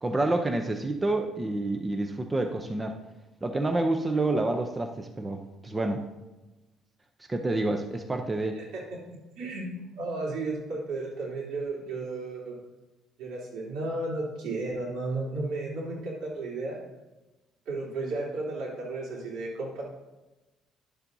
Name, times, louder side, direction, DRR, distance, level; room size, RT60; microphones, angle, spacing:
voice 1, 0.0-2.9 3.4-6.0 7.3-8.6, right 2 dB, 15° right, 5 dB, 0.6 m, -28 dB
voice 2, 9.1-9.6 10.0-12.6 13.2-16.8 17.6-19.8, right 2 dB, 85° right, -4 dB, 3.2 m, -33 dB
11.0 x 7.2 x 2.7 m, 1.1 s
cardioid pair, 125°, 0 cm